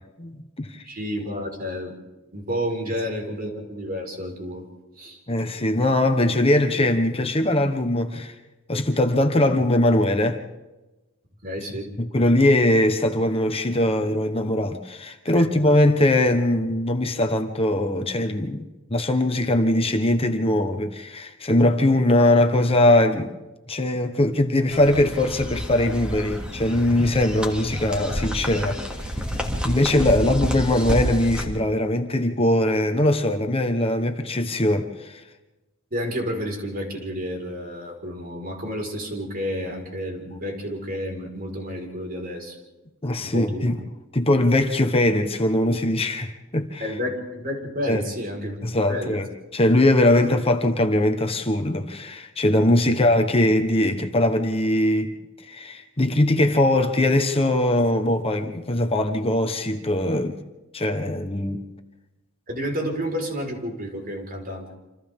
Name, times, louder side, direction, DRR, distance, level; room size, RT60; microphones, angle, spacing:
voice 1, 0.2-0.8 5.3-8.3 8.7-10.4 12.0-23.4 23.7-28.8 29.6-35.2 43.0-43.8 44.1-46.9 47.9-48.0 48.6-55.1 55.5-60.4 60.7-61.6, left 1 dB, 30° left, 1.2 m, -21 dB
voice 2, 0.8-1.9 2.3-4.6 5.0-5.2 11.4-11.9 15.3-15.4 35.9-42.6 43.2-43.7 46.8-48.6 48.9-49.2 52.8-52.9 62.5-64.7, equal, 45° right, 5.0 m, -30 dB
sound 1, 24.7-31.4, equal, 5° right, 2.6 m, -29 dB
28.5 x 27.0 x 3.8 m
head